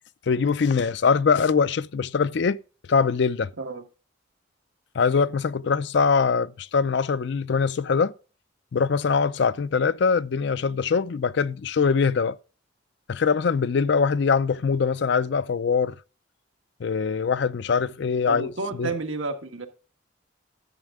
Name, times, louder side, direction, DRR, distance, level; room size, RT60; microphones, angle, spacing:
voice 1, 0.3-2.6 2.9-3.5 4.9-8.1 8.7-12.4 13.1-15.9 16.8-18.5 18.8-18.9, left 5 dB, 60° left, 0.4 m, -22 dB
voice 2, 18.3-19.7, right 3 dB, 85° right, 1.5 m, -31 dB
11.0 x 7.4 x 3.6 m
head